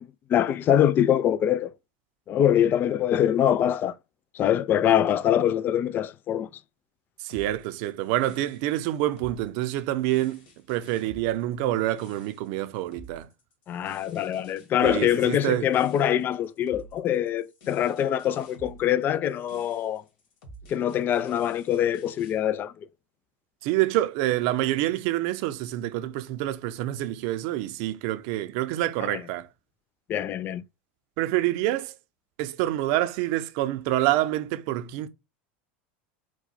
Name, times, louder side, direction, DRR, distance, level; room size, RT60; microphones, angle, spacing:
voice 1, 0.0-1.7 2.3-3.9 4.3-6.5 13.7-20.0 20.7-22.9 29.0-29.2 30.1-30.6, left 10 dB, 35° left, 0.3 m, -24 dB
voice 2, 7.2-13.3 14.8-15.7 23.6-29.5 31.2-31.9 32.4-35.1, right 14 dB, 65° right, 0.6 m, -27 dB
sound 1, 7.3-22.4, right 1 dB, 70° left, 1.9 m, -50 dB
4.6 x 2.2 x 4.1 m
supercardioid pair, 110°, 6 cm